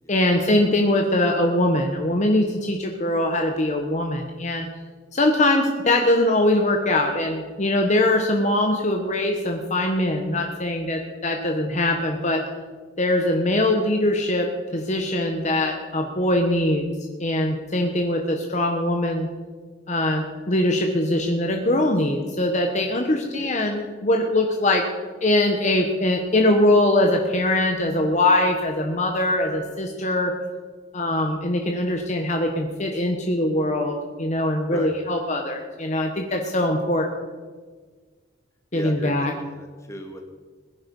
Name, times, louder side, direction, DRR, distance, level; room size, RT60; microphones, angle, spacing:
voice 1, 0.1-4.7 5.1-12.4 13.0-16.9 17.2-19.3 19.9-24.9 25.2-30.3 30.9-37.1 38.7-39.3, left 1 dB, 40° left, 3 dB, 1.3 m, -22 dB
voice 2, 38.7-40.3, left 1 dB, 15° left, 3 dB, 2.1 m, -37 dB
21.0 x 10.5 x 5.4 m, 1.5 s
head